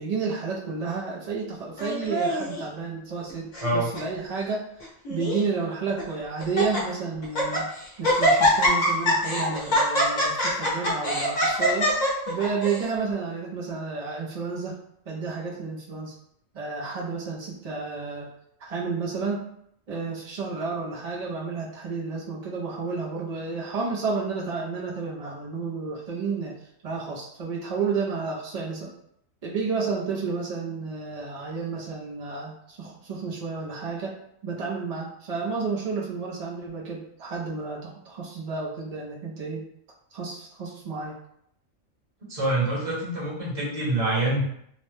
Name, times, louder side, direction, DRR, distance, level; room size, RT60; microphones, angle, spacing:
voice 1, 0.0-4.6 5.1-7.7 8.0-14.8 15.1-16.1 16.5-18.3 18.6-19.4 19.9-26.5 26.8-28.9 29.4-34.2 34.4-39.6 40.1-41.2, right 4 dB, 85° right, -3 dB, 0.3 m, -31 dB
Laughter, 1.8-2.6 3.3-3.7 3.9-4.0 4.8-5.4 6.0-6.1 6.4-6.8 7.2-7.6 8.0-12.8, equal, 40° left, 0.7 m, -23 dB
voice 2, 42.3-44.4, right 2 dB, 30° right, -5 dB, 0.8 m, -25 dB
2.8 x 2.1 x 3.1 m, 0.70 s
omnidirectional pair, 1.4 m